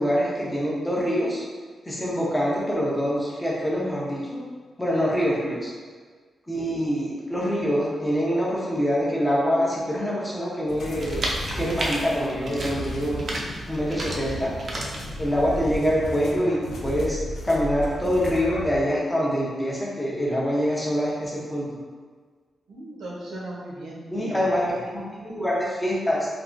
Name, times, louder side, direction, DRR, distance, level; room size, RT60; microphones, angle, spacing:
voice 1, 0.0-1.4 1.9-4.4 4.8-5.7 6.5-11.2 11.6-13.2 13.7-14.5 15.2-17.2 17.4-21.7 24.1-26.3, equal, 10° left, -5 dB, 0.5 m, -25 dB
sound 1, 10.7-15.8, right 1 dB, 40° right, 0.4 m, -33 dB
sound 2, 10.8-18.8, left 1 dB, 70° left, 0.4 m, -35 dB
voice 2, 22.7-24.8, right 1 dB, 90° right, -4 dB, 0.7 m, -38 dB
3.2 x 2.3 x 2.5 m, 1.5 s
wide cardioid pair, 155°, 0 cm